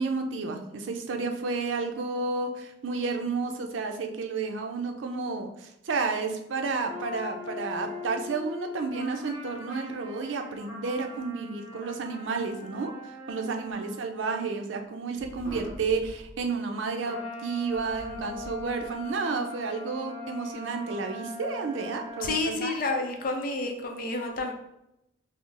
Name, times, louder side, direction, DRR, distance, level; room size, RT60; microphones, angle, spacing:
voice 1, 0.0-12.9 13.3-22.7, right 4 dB, 90° right, 5 dB, 0.5 m, -31 dB
sound 1, 6.8-14.3 15.4-15.8 17.0-22.4, left 2 dB, 20° right, 1.4 m, -41 dB
voice 2, 22.2-24.5, left 3 dB, 50° left, 3 dB, 0.5 m, -30 dB
5.4 x 2.0 x 2.4 m, 0.85 s
head